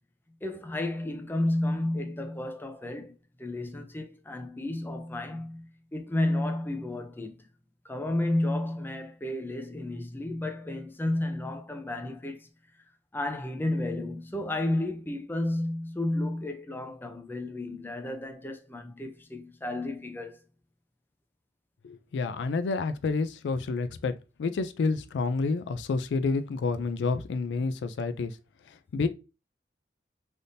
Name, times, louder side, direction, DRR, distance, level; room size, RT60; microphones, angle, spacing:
voice 1, 0.4-3.1 3.4-7.4 7.8-12.5 13.1-20.4, left 1 dB, 10° left, 0.4 m, -32 dB
voice 2, 21.8-24.1 24.4-28.4 28.7-29.1, left 4 dB, 80° left, 0.3 m, -29 dB
3.4 x 2.6 x 2.6 m
head